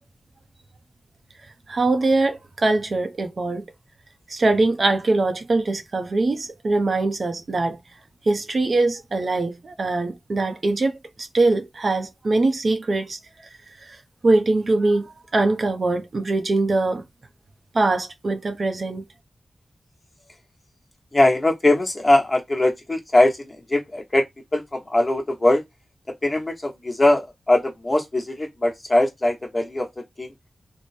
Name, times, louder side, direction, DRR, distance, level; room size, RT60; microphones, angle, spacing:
voice 1, 1.7-3.7 4.3-7.8 8.3-10.9 11.2-13.2 13.8-17.0 17.7-19.1, right 2 dB, 60° right, 0.6 m, -22 dB
voice 2, 21.1-24.2 24.5-25.6 26.2-29.9 30.2-30.3, left 1 dB, 25° left, 1.0 m, -21 dB
3.2 x 2.1 x 4.1 m
wide cardioid pair, 75°, 0 cm